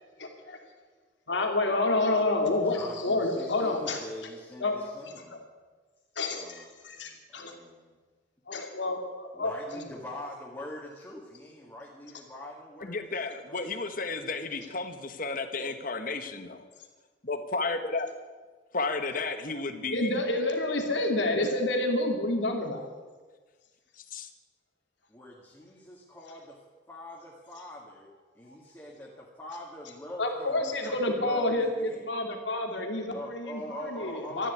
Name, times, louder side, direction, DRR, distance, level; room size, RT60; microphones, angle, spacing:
voice 1, 0.2-0.6 1.3-4.0 4.6-4.7 5.3-5.4 6.2-7.5 8.5-9.8 15.5-15.7 19.9-22.9 30.2-34.5, left 2 dB, 85° left, 3 dB, 2.8 m, -29 dB
voice 2, 2.4-5.5 6.3-6.7 7.0-8.0 9.3-14.2 25.1-26.6 26.9-32.1 33.1-34.5, left 1 dB, 15° left, -5 dB, 2.2 m, -44 dB
voice 3, 12.8-16.6 17.2-18.1 18.7-20.1 24.1-24.3, left 3 dB, 50° left, 8 dB, 1.4 m, -33 dB
13.5 x 11.5 x 8.5 m, 1.4 s
head